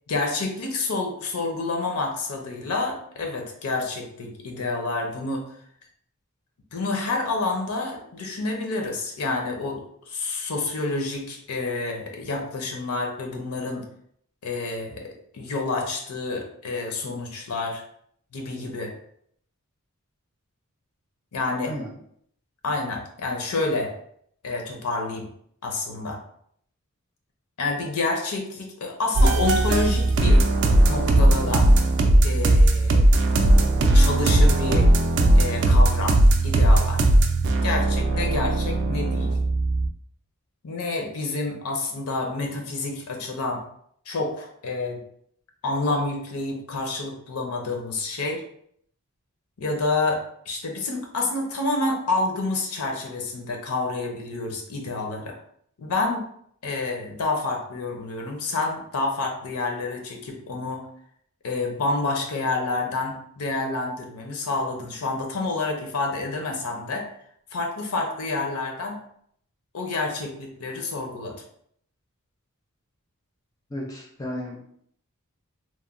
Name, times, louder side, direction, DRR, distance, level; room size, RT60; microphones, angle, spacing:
voice 1, 0.1-5.5 6.7-13.8 14.4-17.8 18.3-18.9 21.3-21.7 22.6-23.9 24.4-25.3 25.6-26.2 27.6-30.5 30.9-31.7 32.2-33.0 33.9-34.9 35.4-36.2 36.4-37.0 37.6-39.4 40.6-43.6 44.1-45.0 45.6-48.4 49.6-55.4 55.8-56.2 56.6-60.9 61.4-67.1 67.5-69.0 69.7-71.3, left 3 dB, 75° left, 2 dB, 0.5 m, -28 dB
sound 1, 29.2-39.9, right 1 dB, 55° right, 0.3 m, -18 dB
voice 2, 73.7-74.6, equal, 15° left, -1 dB, 0.4 m, -33 dB
2.9 x 2.1 x 2.4 m, 0.67 s
head